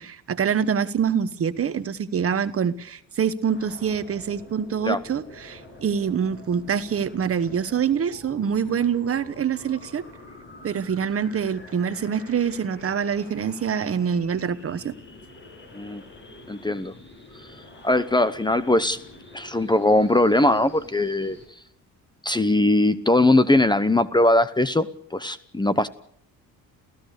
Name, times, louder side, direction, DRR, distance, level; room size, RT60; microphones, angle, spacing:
voice 1, 0.0-10.0 10.6-14.9, right 7 dB, 35° right, 1.2 m, -25 dB
sound 1, 3.5-21.5, left 2 dB, 30° left, 7.1 m, -46 dB
voice 2, 16.5-16.9 17.4-17.5 17.8-19.0 19.3-21.4 22.2-25.9, left 1 dB, 10° left, 0.9 m, -20 dB
29.5 x 15.5 x 6.7 m
cardioid pair, 110°, 37 cm